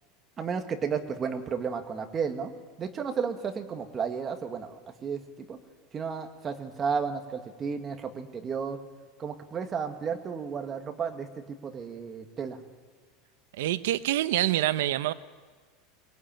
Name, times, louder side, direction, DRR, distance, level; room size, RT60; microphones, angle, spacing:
voice 1, 0.4-2.5 2.8-4.7 5.0-5.2 5.5-5.6 5.9-8.8 9.2-12.6, right 6 dB, 25° right, 6 dB, 1.8 m, -33 dB
voice 2, 13.6-15.1, right 14 dB, 90° right, 13 dB, 0.8 m, -26 dB
23.5 x 20.0 x 9.0 m, 1.5 s
supercardioid pair, 155°, 0 cm